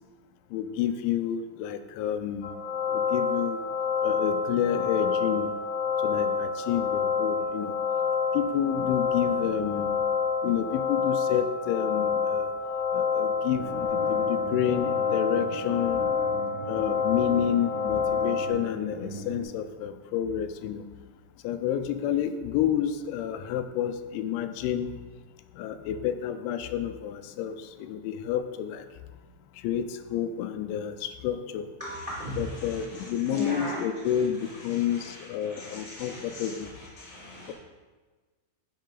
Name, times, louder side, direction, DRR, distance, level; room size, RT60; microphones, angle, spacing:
voice 1, 0.5-2.5 2.9-3.6 4.0-5.5 6.0-7.8 8.3-9.9 10.4-12.5 12.9-16.0 16.7-20.8 21.4-24.9 25.6-28.9 29.6-31.7 32.4-36.7, left 9 dB, 85° left, 10 dB, 2.9 m, -29 dB
sound 1, 2.4-18.5, left 6 dB, 65° left, 2.0 m, -28 dB
sound 2, 13.5-19.4, right 3 dB, 80° right, 4.1 m, -40 dB
voice 2, 31.8-32.8 33.2-33.8 35.4-36.5 37.0-37.5, equal, 40° right, -7 dB, 0.7 m, -37 dB
10.5 x 7.3 x 3.9 m, 1.3 s
omnidirectional pair, 5.3 m